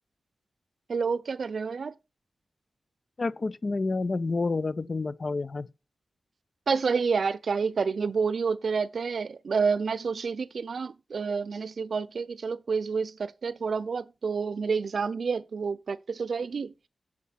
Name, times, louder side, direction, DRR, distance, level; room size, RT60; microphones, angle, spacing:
voice 1, 0.9-1.9 6.7-16.7, right 5 dB, 65° right, 0.6 m, -29 dB
voice 2, 3.2-5.7, left 3 dB, 40° left, 0.5 m, -29 dB
7.6 x 7.3 x 5.8 m
wide cardioid pair, 135°, 0 cm